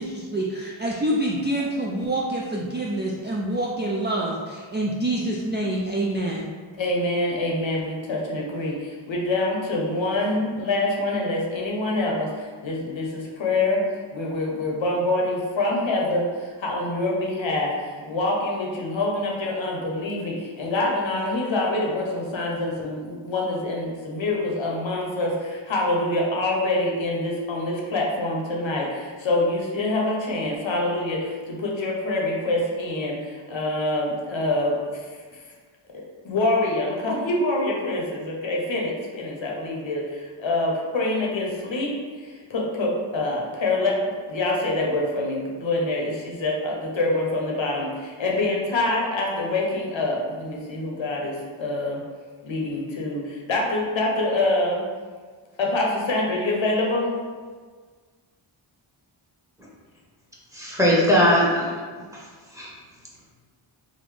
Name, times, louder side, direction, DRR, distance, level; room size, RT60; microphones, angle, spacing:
voice 1, 0.0-6.5, right 1 dB, 25° right, -3 dB, 0.3 m, -26 dB
voice 2, 6.8-13.8 14.1-35.1 36.2-44.0 44.3-52.0 52.4-54.8 55.6-57.1, left 2 dB, 65° left, -2 dB, 0.8 m, -25 dB
voice 3, 60.5-61.7 62.1-62.2 62.5-62.7, equal, 5° right, -6 dB, 1.1 m, -19 dB
3.6 x 2.0 x 3.2 m, 1.5 s
cardioid pair, 40°, 50 cm